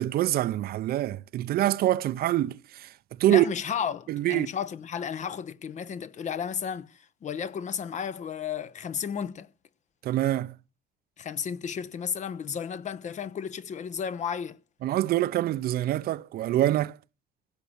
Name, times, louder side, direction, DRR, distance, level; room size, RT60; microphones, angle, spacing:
voice 1, 0.0-2.9 3.2-3.4 4.1-4.5 10.0-10.5 14.8-17.0, right 14 dB, 65° right, 0.7 m, -25 dB
voice 2, 3.3-9.5 11.2-14.6, left 7 dB, 45° left, 0.9 m, -33 dB
16.5 x 6.9 x 8.6 m
cardioid pair, 110°, 17 cm